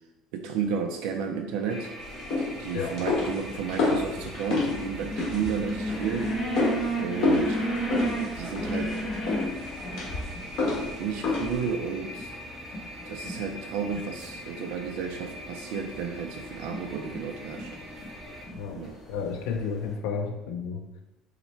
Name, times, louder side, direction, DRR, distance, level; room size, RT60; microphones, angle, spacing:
voice 1, 0.3-1.9 2.6-6.3 7.0-7.6 8.3-9.0 11.0-12.3 13.1-17.7 18.7-19.0, right 6 dB, 80° right, 3 dB, 0.4 m, -32 dB
sound 1, 1.7-18.5, equal, 25° right, 0.8 m, -42 dB
sound 2, 2.0-11.7, left 3 dB, 50° left, 1.4 m, -30 dB
sound 3, 2.8-19.9, right 1 dB, 20° left, 0.9 m, -36 dB
voice 2, 19.1-21.0, left 5 dB, 70° left, 3 dB, 0.4 m, -32 dB
5.6 x 2.1 x 4.3 m, 0.98 s
cardioid pair, 175°, 0 cm